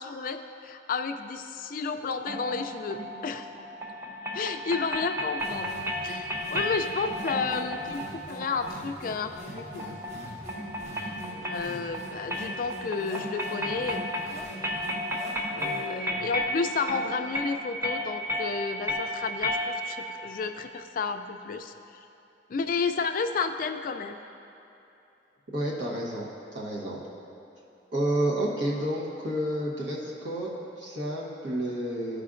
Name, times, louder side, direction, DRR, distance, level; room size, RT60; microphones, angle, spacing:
voice 1, 0.0-3.5 4.3-5.8 6.0-10.0 11.2-14.1 15.5-21.7 22.5-24.2, left 4 dB, 50° left, 7 dB, 0.3 m, -32 dB
sound 1, 2.3-20.1, equal, 15° right, 0.6 m, -34 dB
sound 2, 5.4-16.0, equal, 40° right, 1.1 m, -43 dB
voice 2, 25.5-26.3 26.5-27.0 27.9-32.2, right 1 dB, 70° right, -4 dB, 1.0 m, -30 dB
12.5 x 4.9 x 2.5 m, 2.9 s
head